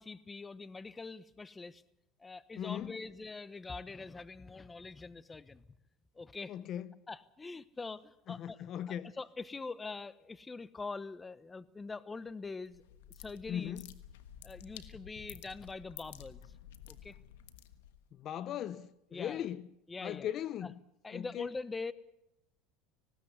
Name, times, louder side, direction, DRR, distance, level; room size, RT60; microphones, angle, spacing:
voice 1, 0.0-1.8 2.2-5.7 6.1-6.5 7.1-8.6 8.9-12.8 13.2-13.8 14.4-16.5 16.9-17.2 19.1-19.4 19.9-20.3 20.6-20.7 21.0-21.9, left 4 dB, 20° left, 1.0 m, -44 dB
voice 2, 2.6-3.0 6.5-6.9 8.3-9.1 13.5-13.9 18.1-19.7 20.0-20.7 21.1-21.5, left 10 dB, 50° left, 0.8 m, -38 dB
sound 1, 12.7-18.1, left 10 dB, 85° left, 1.3 m, -52 dB
19.5 x 16.5 x 8.0 m
supercardioid pair, 100°, 0 cm